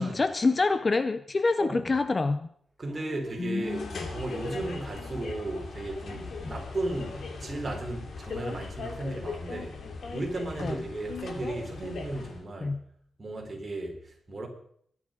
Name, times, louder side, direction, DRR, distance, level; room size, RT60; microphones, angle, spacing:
voice 1, 0.0-2.5 3.4-3.9 6.4-6.5 10.6-10.8 12.6-12.8, left 3 dB, 25° left, 0.5 m, -26 dB
voice 2, 1.6-1.9 2.8-9.8 10.1-12.8 13.2-14.5, right 2 dB, 25° right, 4.1 m, -35 dB
Dog, 2.8-4.7 5.4-6.2 8.4-9.3, equal, 5° right, 2.9 m, -52 dB
sound 1, 3.6-12.4, left 4 dB, 55° left, 2.8 m, -39 dB
22.5 x 9.9 x 5.2 m
wide cardioid pair, 160°, 0 cm